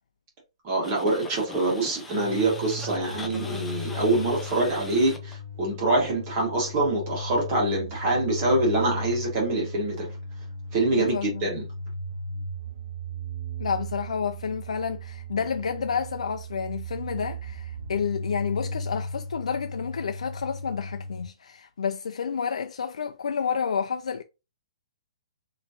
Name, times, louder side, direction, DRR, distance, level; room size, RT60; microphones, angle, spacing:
voice 1, 0.6-10.1 10.7-11.6, right 2 dB, 20° right, 1.7 m, -25 dB
sound 1, 0.8-5.4 10.0-10.1, left 3 dB, 5° left, 0.4 m, -42 dB
sound 2, 2.1-21.3, equal, 55° right, 0.8 m, -36 dB
voice 2, 10.9-11.5 13.6-24.2, left 6 dB, 85° left, 0.5 m, -30 dB
4.3 x 3.0 x 3.0 m
hypercardioid pair, 175°, 3 cm